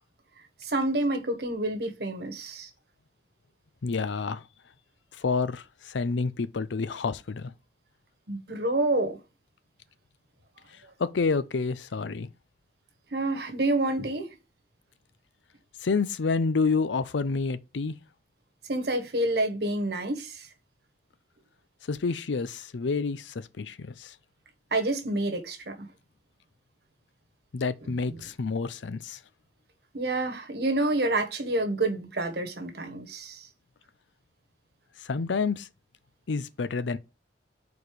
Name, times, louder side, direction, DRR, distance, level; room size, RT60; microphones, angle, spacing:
voice 1, 0.6-2.7 8.3-9.2 13.1-14.3 18.7-20.5 24.7-25.9 27.8-28.2 29.9-33.5, right 2 dB, 60° right, 1.2 m, -28 dB
voice 2, 3.8-4.4 5.2-7.5 11.0-12.3 15.8-18.0 21.9-24.1 27.5-29.2 35.0-35.7 36.3-37.0, left 4 dB, 90° left, 0.5 m, -28 dB
4.7 x 4.2 x 5.0 m
head